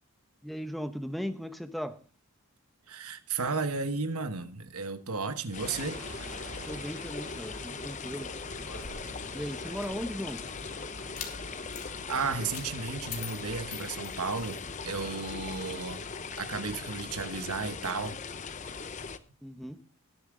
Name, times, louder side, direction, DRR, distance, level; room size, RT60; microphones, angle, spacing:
voice 1, 0.4-2.0 6.7-8.3 9.3-10.4 19.4-19.8, equal, ahead, 0.8 m, -37 dB
voice 2, 2.9-6.0 11.4-11.7 12.1-16.0 16.4-18.2 18.6-19.0, right 4 dB, 80° right, 1.2 m, -34 dB
sound 1, 5.5-19.2, left 5 dB, 35° left, 0.6 m, -40 dB
sound 2, 5.7-13.9, right 2 dB, 55° right, 1.4 m, -49 dB
sound 3, 8.6-10.2 11.0-11.3 11.7-11.9 12.5-12.7 13.1-14.6, left 7 dB, 75° left, 2.8 m, -44 dB
20.0 x 7.1 x 3.8 m
head